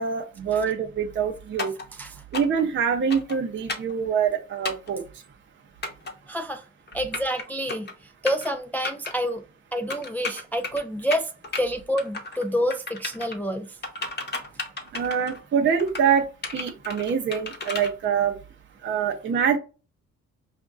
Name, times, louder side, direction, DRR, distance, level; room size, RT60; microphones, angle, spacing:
voice 1, 0.0-1.7 2.3-5.0 14.9-16.3 16.5-18.3 18.8-19.6, right 7 dB, 40° right, 0.6 m, -25 dB
sound 1, 1.6-1.8 2.3-2.6 3.1-3.4 3.7-3.9 4.6-4.9 5.8-6.1 6.9-7.4 7.7-7.9 8.3-8.5 8.8-9.1 9.9-10.8 11.1-11.6 12.0-12.4 12.7-13.4 13.8-15.4 15.8-16.1 16.4-17.9, left 3 dB, 35° left, 0.9 m, -32 dB
voice 2, 1.9-2.2 6.3-6.7 6.9-9.4 9.7-11.3 11.6-13.8, equal, 5° left, 0.3 m, -28 dB
5.0 x 2.5 x 2.3 m
cardioid pair, 90°, 30 cm